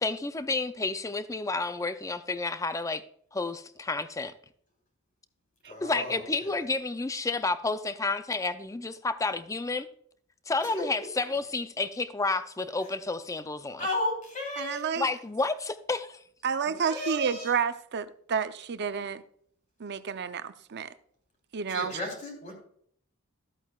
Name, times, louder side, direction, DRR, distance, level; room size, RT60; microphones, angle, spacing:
voice 1, 0.0-3.0 3.3-4.3 5.8-9.9 10.5-13.9 14.9-16.2, left 3 dB, 15° left, 0.5 m, -30 dB
voice 2, 5.6-6.5 10.6-10.9 13.8-14.8 16.6-17.5 21.7-22.5, left 2 dB, 35° left, 3.7 m, -34 dB
voice 3, 14.6-15.1 16.4-19.2 19.8-20.9 21.5-22.0, right 6 dB, 50° right, 0.6 m, -30 dB
13.5 x 8.3 x 2.4 m
head